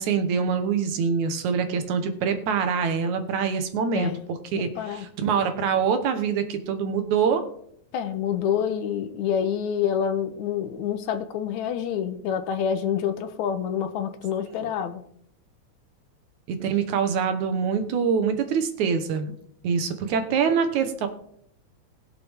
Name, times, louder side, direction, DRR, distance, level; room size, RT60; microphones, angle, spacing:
voice 1, 0.0-7.5 16.5-19.3 19.6-21.1, right 6 dB, 80° right, 8 dB, 2.5 m, -25 dB
voice 2, 4.5-5.1 7.9-15.1, left 8 dB, 80° left, 9 dB, 2.2 m, -27 dB
20.0 x 6.9 x 3.6 m, 0.67 s
omnidirectional pair, 3.3 m